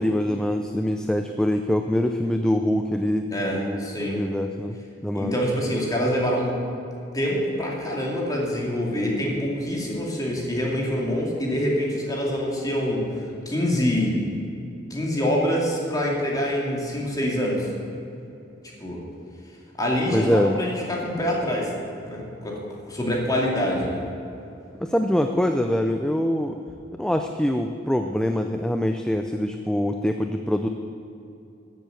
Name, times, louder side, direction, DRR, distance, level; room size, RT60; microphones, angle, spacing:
voice 1, 0.0-3.3 3.6-4.8 5.0-5.4 20.1-20.6 24.8-26.6 27.0-30.7, left 1 dB, 5° left, 6 dB, 0.4 m, -24 dB
voice 2, 3.3-4.2 5.1-6.6 7.1-14.1 14.9-17.7 18.8-19.0 19.8-21.7 22.1-22.6 22.9-24.0, equal, 20° left, -2 dB, 2.4 m, -25 dB
13.5 x 7.7 x 7.8 m, 2.8 s
head